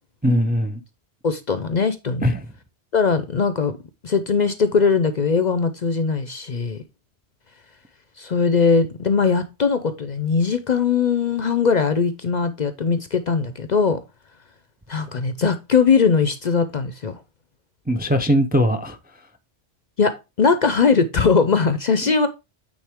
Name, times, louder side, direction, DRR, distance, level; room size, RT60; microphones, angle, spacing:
voice 1, 0.2-0.8 2.2-2.5 17.9-19.0 22.0-22.1, equal, 10° right, 0.5 m, -20 dB
voice 2, 1.2-2.3 2.9-3.8 4.0-6.8 8.2-14.0 14.9-17.1 20.0-22.3, left 5 dB, 50° left, 0.6 m, -20 dB
8.9 x 3.9 x 3.5 m
omnidirectional pair, 1.2 m